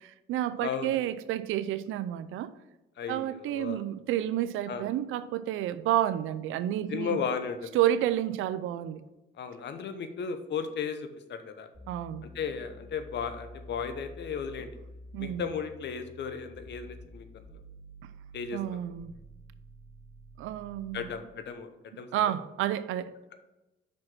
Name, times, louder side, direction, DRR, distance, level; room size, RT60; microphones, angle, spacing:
voice 1, 0.0-2.5 3.1-7.2 7.7-9.0 11.9-12.3 15.1-15.4 18.5-19.1 20.4-21.1 22.1-23.1, right 12 dB, 85° right, 0.5 m, -30 dB
voice 2, 0.6-1.0 3.0-3.8 4.7-4.9 6.9-7.8 9.4-11.7 12.2-14.7 15.2-17.6 18.3-18.8 20.9-21.7 22.0-22.3, left 6 dB, 60° left, 0.9 m, -35 dB
sound 1, 11.7-21.3, equal, 50° right, 2.1 m, -49 dB
5.8 x 5.2 x 5.9 m
cardioid pair, 90°, 20 cm